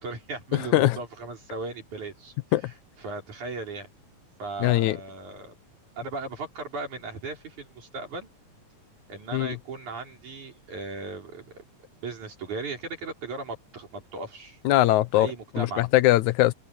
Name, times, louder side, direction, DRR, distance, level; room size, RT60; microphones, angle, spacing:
voice 1, 0.0-2.3 2.6-2.7 3.0-3.9 4.4-5.5 6.0-8.3 9.1-11.6 12.0-14.6 15.1-15.8, right 3 dB, 80° right, 6.2 m, -37 dB
voice 2, 0.5-1.0 2.5-2.7 4.6-5.0 9.3-9.6 14.7-16.5, left 16 dB, 80° left, 2.1 m, -21 dB
omnidirectional pair, 3.4 m